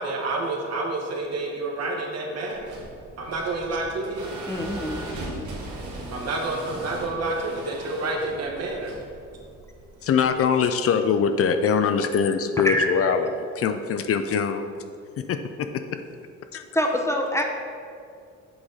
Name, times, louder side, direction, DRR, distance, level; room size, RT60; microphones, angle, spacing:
voice 1, 0.0-2.7 3.2-4.3 6.1-9.0, right 2 dB, 55° right, 0 dB, 1.3 m, -29 dB
sound 1, 2.6-10.4, right 1 dB, 85° right, 1.6 m, -38 dB
voice 2, 4.5-5.1 12.6-12.9 16.7-17.4, equal, 10° left, 2 dB, 0.7 m, -24 dB
voice 3, 10.0-14.9 15.2-15.8 16.5-16.7, left 6 dB, 50° left, 8 dB, 0.4 m, -23 dB
7.8 x 4.0 x 3.8 m, 2.4 s
cardioid pair, 90°, 30 cm